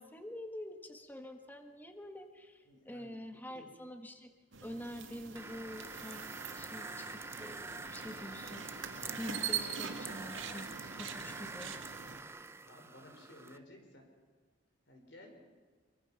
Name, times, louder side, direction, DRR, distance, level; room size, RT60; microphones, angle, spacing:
voice 1, 0.0-4.3 4.6-6.2 6.5-8.7 9.1-10.7 11.0-11.8, left 1 dB, 10° left, 5 dB, 1.4 m, -46 dB
voice 2, 2.7-3.1 3.5-3.7 12.7-14.1 14.9-15.4, left 1 dB, 65° left, 3 dB, 5.1 m, -55 dB
sound 1, 4.5-12.2, right 7 dB, 90° right, 2.1 m, -43 dB
sound 2, 5.4-13.6, right 3 dB, 15° right, 0.6 m, -46 dB
25.0 x 24.0 x 5.8 m, 1.5 s
head